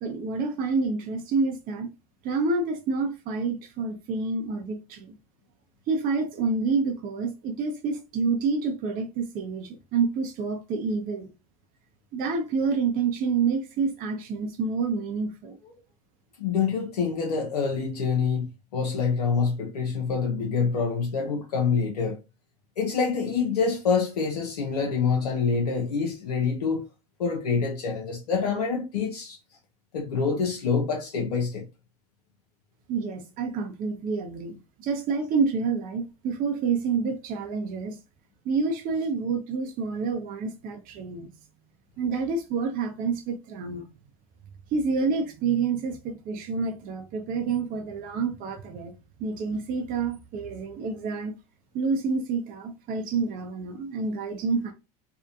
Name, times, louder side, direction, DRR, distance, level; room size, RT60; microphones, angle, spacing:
voice 1, 0.0-1.9 2.2-5.1 5.9-11.3 12.1-15.6 32.9-38.0 38.5-41.3 42.0-43.8 44.7-48.9 49.2-51.3 51.7-54.7, right 4 dB, 45° right, 0.6 m, -28 dB
voice 2, 16.4-22.2 22.8-26.9 27.2-29.4 29.9-31.7, left 5 dB, 90° left, 0.5 m, -26 dB
2.7 x 2.1 x 2.4 m
hypercardioid pair, 80°, 19 cm